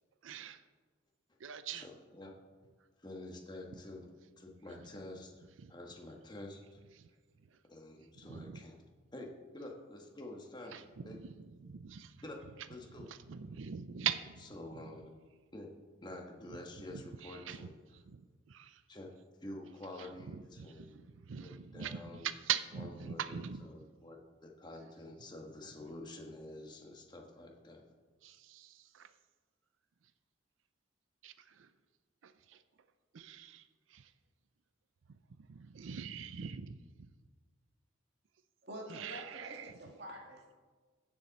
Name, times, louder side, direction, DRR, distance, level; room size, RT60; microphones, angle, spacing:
voice 1, 0.2-0.6 1.4-1.8 8.3-8.6 10.7-10.8 11.1-11.2 11.6-12.1 13.3-14.2 17.2-17.6 18.1-18.2 18.5-18.8 20.3-20.9 21.3-22.0 22.2-23.6 28.2-29.1 31.2-31.7 32.2-32.6 33.1-33.6 33.9-34.0 35.5-37.1 38.9-39.7, right 9 dB, 80° right, 12 dB, 0.5 m, -41 dB
voice 2, 1.7-2.3 3.0-4.1 4.4-6.8 7.7-8.8 9.1-11.2 12.2-12.4 12.7-13.1 14.5-15.1 15.5-15.7 16.0-17.8 18.9-19.1 19.4-21.0 21.4-22.3 22.7-27.8, left 1 dB, 20° left, 1 dB, 1.3 m, -48 dB
voice 3, 38.6-40.5, right 1 dB, 55° right, 0 dB, 2.2 m, -47 dB
15.0 x 7.3 x 4.1 m, 1.4 s
head